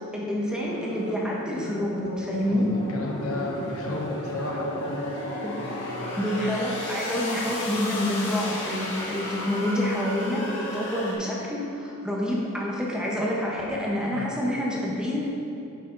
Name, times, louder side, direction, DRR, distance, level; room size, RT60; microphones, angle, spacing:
voice 1, 0.1-2.7 5.4-5.6 6.2-15.3, left 1 dB, 5° right, -4 dB, 1.1 m, -28 dB
sound 1, 0.6-11.1, left 1 dB, 55° left, 2.0 m, -34 dB
voice 2, 2.5-6.2 14.1-14.2, left 1 dB, 85° left, -1 dB, 1.4 m, -33 dB
10.0 x 6.4 x 4.0 m, 2.8 s
head